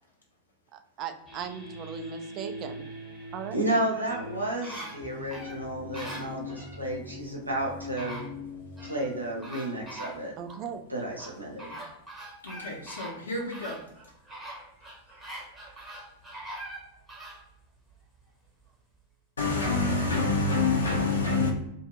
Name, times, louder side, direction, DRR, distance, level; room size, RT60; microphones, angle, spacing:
voice 1, 0.7-2.9 3.3-3.6 10.4-10.8, right 8 dB, 35° right, 0.3 m, -38 dB
sound 1, 1.3-10.6, left 2 dB, 15° left, 1.1 m, -42 dB
voice 2, 3.5-8.2 8.8-10.3 10.9-11.7, right 1 dB, 85° right, 0.7 m, -32 dB
sound 2, 3.9-6.8 7.6-7.7 8.0-9.1 9.4-10.6 11.2-17.4 17.9-18.0, right 1 dB, 10° right, 0.8 m, -43 dB
voice 3, 12.4-13.8 19.4-21.5, left 3 dB, 75° left, 0.7 m, -27 dB
2.5 x 2.2 x 2.9 m
figure-of-eight pair, 90°, 0 cm